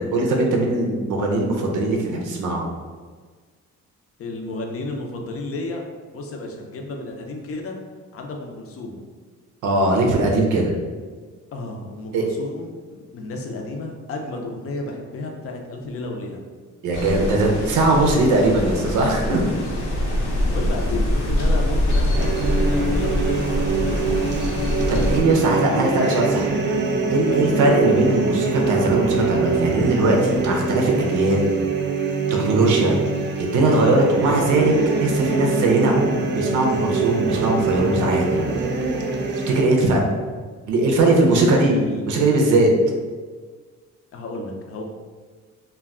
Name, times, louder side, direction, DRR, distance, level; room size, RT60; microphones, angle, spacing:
voice 1, 0.0-2.7 9.6-10.7 12.1-12.2 16.8-19.5 24.9-26.6 27.1-31.5 32.4-33.0 33.4-34.7 35.0-36.1 36.3-38.5 39.5-40.0 40.7-41.8 42.1-42.7, right 2 dB, 90° right, 1 dB, 0.5 m, -20 dB
voice 2, 4.2-5.8 6.1-7.8 8.1-9.0 11.5-16.4 20.3-24.3 25.3-25.4 25.7-25.9 27.2-27.5 41.2-42.1 44.1-44.8, left 2 dB, 50° left, 2 dB, 0.5 m, -32 dB
sound 1, 16.9-25.2, left 1 dB, 80° left, 0.8 m, -23 dB
sound 2, 22.2-39.6, right 4 dB, 40° right, 0.4 m, -23 dB
2.2 x 2.2 x 3.5 m, 1.5 s
cardioid pair, 90°, 30 cm